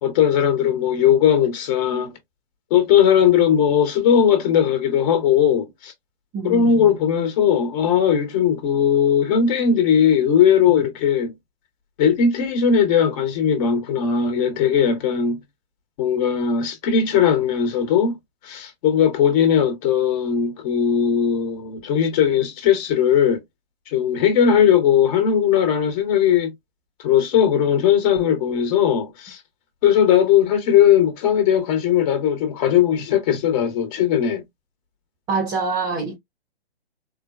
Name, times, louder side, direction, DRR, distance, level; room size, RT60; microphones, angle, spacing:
voice 1, 0.0-2.2 2.7-5.9 6.4-11.3 12.0-15.4 16.0-18.2 18.4-23.4 23.9-26.5 27.0-29.4 29.8-34.4, left 8 dB, 35° left, 1.2 m, -18 dB
voice 2, 6.3-6.9 35.3-36.2, right 4 dB, 10° right, 0.5 m, -25 dB
4.2 x 2.2 x 2.4 m
hypercardioid pair, 135°, 32 cm